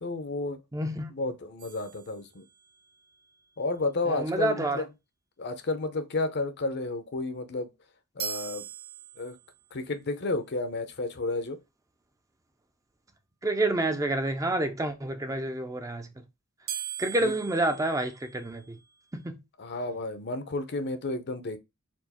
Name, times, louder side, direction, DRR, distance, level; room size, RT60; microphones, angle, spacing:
voice 1, 0.0-0.6 1.1-2.4 3.6-4.9 5.4-7.7 8.2-8.7 9.2-9.4 9.7-11.6 17.2-17.4 19.6-21.6, left 2 dB, 50° left, 0.7 m, -31 dB
voice 2, 0.7-1.1 4.1-4.8 13.4-16.1 17.0-18.8 19.1-19.4, right 2 dB, 15° right, 0.5 m, -28 dB
sound 1, 1.6-2.9 8.2-9.7 16.7-18.8, right 9 dB, 45° right, 1.0 m, -40 dB
4.5 x 2.5 x 4.2 m
head